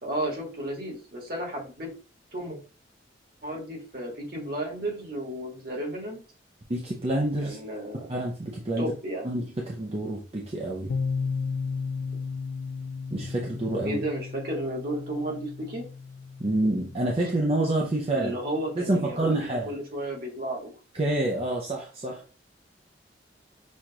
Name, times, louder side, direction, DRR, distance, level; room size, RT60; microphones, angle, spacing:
voice 1, 0.0-1.9 2.3-2.6 3.4-6.2 7.4-8.1 8.8-9.3 13.8-15.9 18.1-20.7, right 1 dB, 50° right, -1 dB, 1.6 m, -33 dB
voice 2, 6.7-7.6 8.1-8.9 9.2-10.9 13.1-14.0 16.4-18.3 18.8-19.7 20.9-22.2, right 1 dB, 30° right, -1 dB, 0.6 m, -27 dB
sound 1, 10.9-18.6, left 5 dB, 50° left, 0.3 m, -35 dB
6.2 x 2.4 x 2.8 m, 0.36 s
head